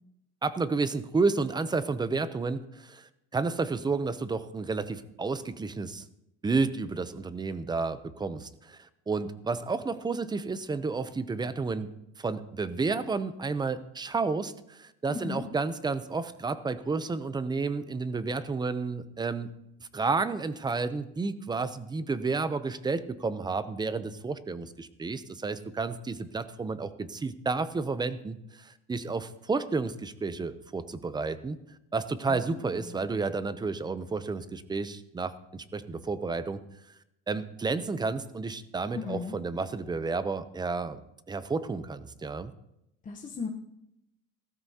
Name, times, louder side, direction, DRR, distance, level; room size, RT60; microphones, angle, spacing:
voice 1, 0.4-6.1 6.4-11.9 12.2-19.5 19.9-31.6 31.9-36.6 37.3-41.0 41.3-42.5, right 4 dB, 10° right, 13 dB, 0.5 m, -31 dB
voice 2, 15.1-15.4 32.3-32.9 38.9-39.4 43.0-43.5, left 5 dB, 25° left, 0 dB, 0.9 m, -37 dB
16.5 x 14.0 x 2.8 m, 0.83 s
cardioid pair, 140°, 35 cm